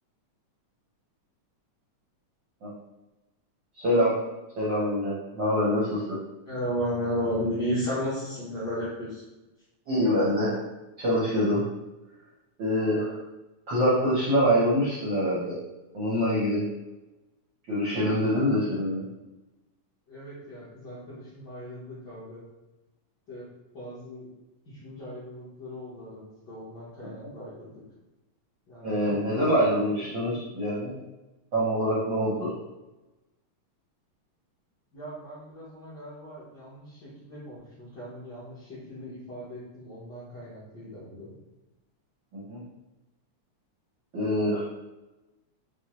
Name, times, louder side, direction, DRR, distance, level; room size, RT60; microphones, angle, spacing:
voice 1, 3.8-4.1 4.6-6.2 9.9-10.6 11.0-11.6 12.6-13.2 13.7-15.6 15.9-16.7 17.7-19.1 27.0-27.3 28.8-30.9 31.5-32.5 42.3-42.6 44.1-44.7, equal, 75° right, -8 dB, 1.0 m, -25 dB
voice 2, 6.5-9.2 20.1-22.4 23.3-23.4 23.7-24.2 24.7-27.7 28.7-29.4 30.2-30.3 34.9-41.3, equal, 65° left, -10 dB, 1.0 m, -35 dB
5.9 x 2.1 x 3.0 m, 1.0 s
omnidirectional pair, 3.4 m